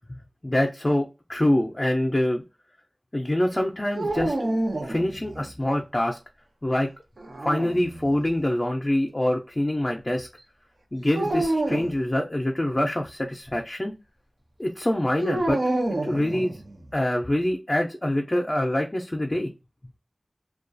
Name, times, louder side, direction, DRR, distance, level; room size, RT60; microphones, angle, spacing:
voice 1, 0.1-2.4 3.1-4.3 4.8-6.2 6.6-6.9 7.4-10.3 10.9-13.9 14.6-15.6 16.0-16.6 16.9-19.5, left 1 dB, 35° left, 1 dB, 0.4 m, -25 dB
sound 1, 4.0-5.5 7.2-8.3 11.1-11.9 15.2-16.8, right 2 dB, 85° right, 0.6 m, -28 dB
2.3 x 2.2 x 2.5 m, 0.27 s
wide cardioid pair, 50°, 0 cm